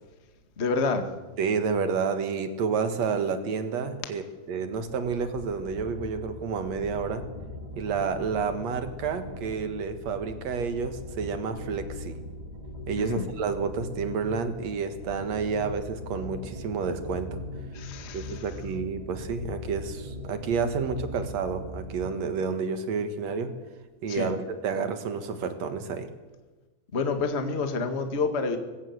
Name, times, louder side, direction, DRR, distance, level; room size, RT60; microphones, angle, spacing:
voice 1, 0.6-1.1 13.0-13.2 17.7-18.4 24.1-24.3 26.9-28.6, left 4 dB, 45° left, 6 dB, 0.8 m, -28 dB
voice 2, 1.4-4.2 4.5-7.3 7.8-12.2 12.9-17.4 18.1-23.5 24.0-26.1, right 5 dB, 55° right, 9 dB, 2.1 m, -30 dB
sound 1, 5.0-22.2, left 1 dB, 10° right, 2.9 m, -40 dB
21.0 x 16.0 x 8.2 m, 1.2 s
omnidirectional pair, 4.6 m